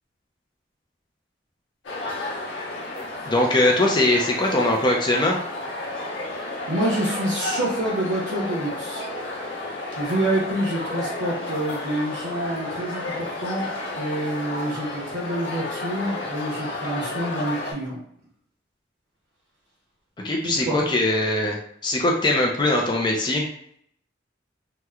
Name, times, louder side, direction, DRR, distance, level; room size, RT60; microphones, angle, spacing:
sound 1, 1.8-17.7, left 2 dB, 85° left, 0.8 m, -32 dB
voice 1, 3.2-5.4 20.2-23.5, left 1 dB, 25° left, -1 dB, 0.5 m, -21 dB
voice 2, 6.7-9.0 10.0-18.0 20.4-20.8, right 1 dB, 85° right, -6 dB, 0.9 m, -27 dB
3.0 x 2.1 x 3.5 m, 0.68 s
head